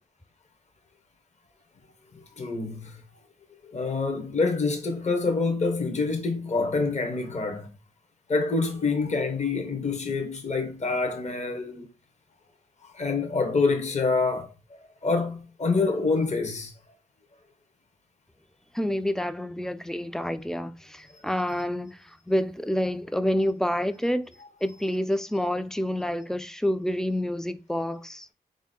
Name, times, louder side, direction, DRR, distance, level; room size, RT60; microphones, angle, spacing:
voice 1, 2.1-3.0 3.6-7.7 8.3-11.9 12.8-14.5 14.8-16.7 21.1-21.2, left 3 dB, 45° left, 0.8 m, -27 dB
voice 2, 18.7-24.3 24.6-28.3, equal, 5° left, 0.4 m, -28 dB
3.7 x 2.7 x 3.6 m
cardioid pair, 60°, 17 cm